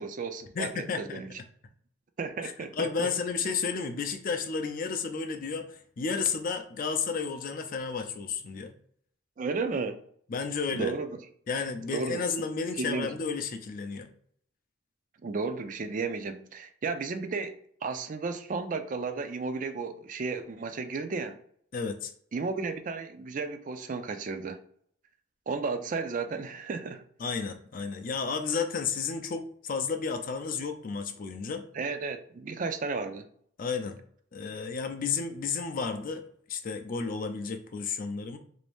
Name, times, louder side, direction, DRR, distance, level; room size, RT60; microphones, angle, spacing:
voice 1, 0.0-1.3 2.2-3.1 9.4-10.0 10.7-11.1 11.9-12.2 12.8-13.1 15.2-21.4 22.3-24.6 25.5-27.0 31.7-33.3, right 4 dB, 40° right, 8 dB, 0.4 m, -33 dB
voice 2, 0.6-1.2 2.4-8.7 10.3-10.9 11.5-14.1 21.7-22.1 27.2-31.6 33.6-34.0 34.3-36.2 36.5-38.4, left 5 dB, 45° left, 7 dB, 0.4 m, -32 dB
3.4 x 2.6 x 3.4 m, 0.62 s
head